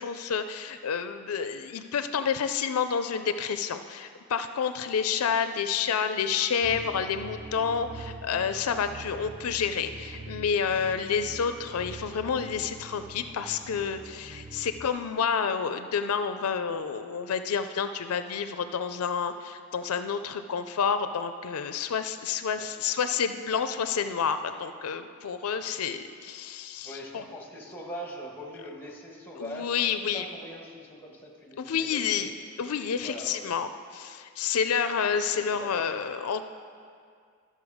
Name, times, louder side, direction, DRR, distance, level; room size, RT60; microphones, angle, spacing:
voice 1, 0.0-27.2 29.4-30.2 31.6-32.3 32.6-36.4, left 6 dB, 90° left, 9 dB, 0.4 m, -29 dB
sound 1, 6.6-14.9, right 2 dB, 40° right, 0.5 m, -44 dB
voice 2, 26.8-29.8 30.1-32.2 33.0-33.5 35.3-36.0, equal, 10° left, -1 dB, 1.4 m, -42 dB
12.5 x 6.5 x 4.9 m, 2.2 s
head